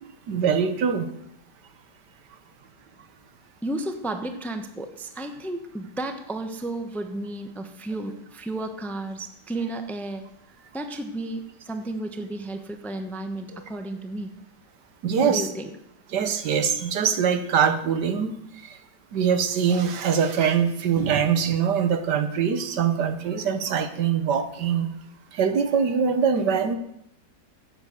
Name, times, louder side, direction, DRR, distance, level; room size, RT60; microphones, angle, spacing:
voice 1, 0.0-1.1 15.0-15.5 16.1-18.3 18.6-18.8 19.1-24.9 25.3-26.8, right 7 dB, 75° right, 10 dB, 1.6 m, -23 dB
voice 2, 3.6-10.2 10.7-14.3 15.2-15.7, right 2 dB, ahead, 7 dB, 0.7 m, -33 dB
14.5 x 8.2 x 6.8 m, 0.78 s
omnidirectional pair, 1.8 m